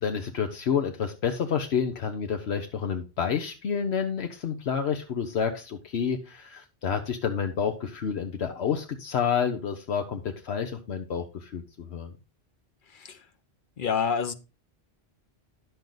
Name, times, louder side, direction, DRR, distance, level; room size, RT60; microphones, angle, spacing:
voice 1, 0.0-12.1, left 7 dB, 80° left, 6 dB, 1.1 m, -29 dB
voice 2, 12.9-13.2 13.8-14.3, left 6 dB, 55° left, 11 dB, 1.0 m, -28 dB
10.5 x 7.0 x 3.9 m, 0.30 s
omnidirectional pair, 1.1 m